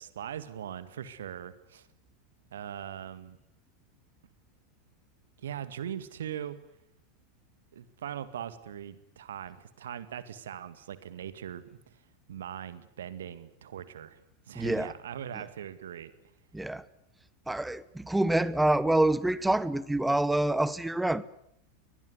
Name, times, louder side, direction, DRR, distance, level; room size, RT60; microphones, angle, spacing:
voice 1, 0.0-1.9 2.5-3.4 5.4-6.6 7.7-11.6 12.3-14.2 14.5-16.1, right 9 dB, 60° right, 2.0 m, -40 dB
voice 2, 14.5-14.9 16.5-16.8 17.5-21.2, right 1 dB, 5° right, 1.1 m, -26 dB
22.5 x 20.5 x 9.6 m
figure-of-eight pair, 90°, 0 cm